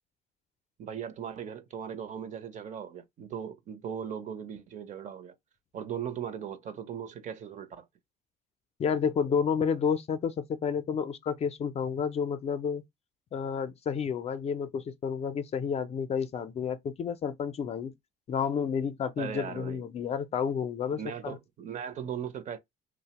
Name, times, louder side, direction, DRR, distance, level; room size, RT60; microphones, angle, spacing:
voice 1, 0.8-5.4 5.7-7.9 19.2-19.8 20.9-22.6, right 8 dB, 45° right, 0.6 m, -38 dB
voice 2, 8.8-12.8 13.3-17.9 18.3-21.4, left 6 dB, 40° left, 0.4 m, -30 dB
2.7 x 2.0 x 2.8 m
cardioid pair, 110°, 17 cm